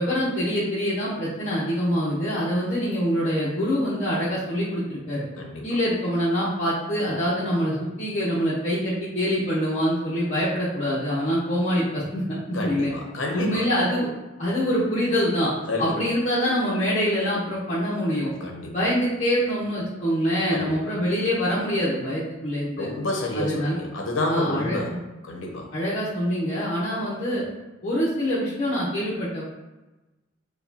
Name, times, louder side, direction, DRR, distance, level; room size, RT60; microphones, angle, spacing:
voice 1, 0.0-5.2 5.6-12.9 13.3-14.1 14.4-15.5 15.8-18.3 18.7-22.9 23.3-23.8 24.3-24.8 25.7-27.4 27.8-29.4, equal, 40° left, -9 dB, 1.0 m, -25 dB
voice 2, 12.5-13.6 15.7-15.9 18.4-18.6 20.5-20.7 22.8-24.9 25.2-25.7, left 2 dB, 75° left, 0 dB, 0.8 m, -29 dB
6.7 x 2.4 x 2.7 m, 1.1 s
head